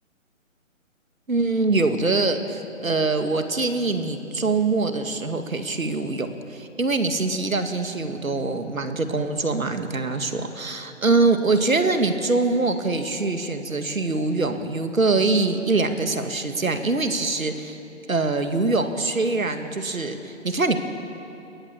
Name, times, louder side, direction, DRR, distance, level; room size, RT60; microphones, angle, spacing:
voice 1, 1.3-17.8 18.1-20.8, right 3 dB, 85° right, 7 dB, 2.1 m, -24 dB
22.0 x 19.0 x 7.2 m, 2.9 s
figure-of-eight pair, 150°, 40 cm